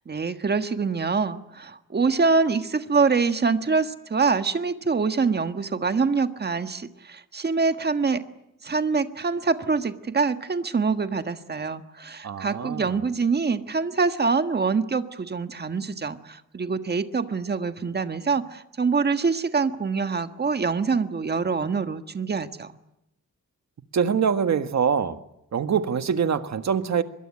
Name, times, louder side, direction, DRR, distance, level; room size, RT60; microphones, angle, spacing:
voice 1, 0.1-8.2 8.6-22.7, right 4 dB, 30° right, 9 dB, 1.5 m, -25 dB
voice 2, 12.2-12.9 23.9-25.2 25.5-27.0, right 7 dB, 60° right, 9 dB, 1.6 m, -24 dB
24.5 x 22.5 x 9.7 m, 0.85 s
wide cardioid pair, 160°, 31 cm